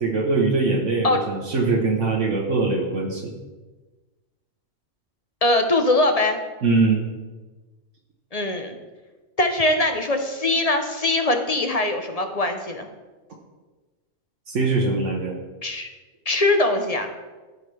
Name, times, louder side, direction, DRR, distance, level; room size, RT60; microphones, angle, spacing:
voice 1, 0.0-3.3 6.6-7.0 14.5-15.4, right 3 dB, 70° right, -2 dB, 1.4 m, -22 dB
voice 2, 5.4-6.4 8.3-8.8 9.4-12.9 15.6-15.9 16.3-17.1, left 2 dB, 35° left, 5 dB, 0.7 m, -22 dB
15.0 x 5.5 x 3.3 m, 1.3 s
omnidirectional pair, 1.3 m